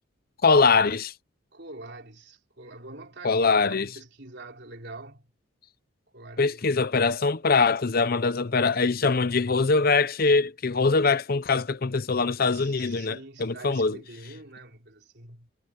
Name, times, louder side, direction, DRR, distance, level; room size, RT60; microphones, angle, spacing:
voice 1, 0.4-1.1 3.2-3.9 6.4-14.0, left 4 dB, 45° left, 0.7 m, -23 dB
voice 2, 1.5-5.3 6.1-6.7 12.4-15.5, right 2 dB, 55° right, 4.2 m, -45 dB
head